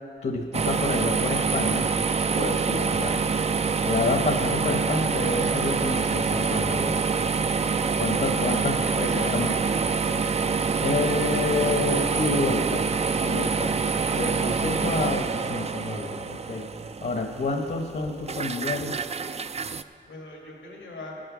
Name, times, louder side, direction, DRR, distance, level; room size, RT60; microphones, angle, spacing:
voice 1, 0.2-3.2 3.8-7.0 8.0-9.5 10.8-12.8 13.2-13.7 14.1-16.7 17.0-18.9, left 3 dB, 50° left, 2 dB, 0.9 m, -29 dB
sound 1, 0.5-19.8, right 5 dB, 35° right, 0.4 m, -26 dB
voice 2, 8.0-10.3 20.1-21.2, left 1 dB, 85° left, -2 dB, 2.0 m, -39 dB
15.5 x 6.5 x 6.1 m, 2.5 s
wide cardioid pair, 70°, 19 cm